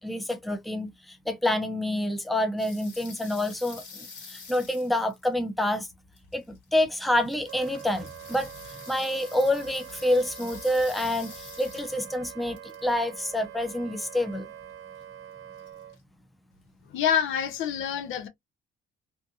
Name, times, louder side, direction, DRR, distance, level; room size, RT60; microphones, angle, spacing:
voice 1, 0.0-5.9 6.3-8.5 8.9-14.5, left 1 dB, ahead, 0.5 m, -27 dB
sound 1, 2.6-5.6 6.1-6.8 7.0-12.1 12.4-13.2 15.6-16.0, left 5 dB, 60° left, 1.4 m, -47 dB
Wind instrument woodwind instrument, 7.4-16.0, right 10 dB, 85° right, 0.5 m, -45 dB
voice 2, 16.9-18.3, left 8 dB, 80° left, 0.6 m, -26 dB
2.6 x 2.4 x 2.6 m
cardioid pair, 90°, 20 cm